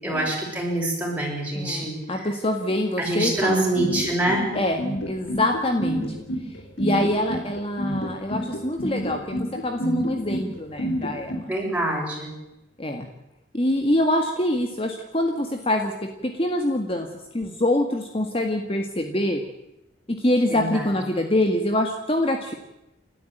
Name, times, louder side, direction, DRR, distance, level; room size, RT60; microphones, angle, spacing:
voice 1, 0.0-2.3 3.0-4.5 11.5-12.3 20.5-20.9, right 1 dB, 10° right, -1 dB, 7.2 m, -25 dB
voice 2, 1.5-3.7 4.5-6.1 6.8-11.5 12.8-13.1 13.5-17.1 17.3-19.4 20.1-22.5, left 1 dB, 30° left, 4 dB, 1.8 m, -25 dB
sound 1, 3.8-11.4, equal, 85° left, 5.5 m, -28 dB
30.0 x 13.0 x 9.2 m, 0.93 s
head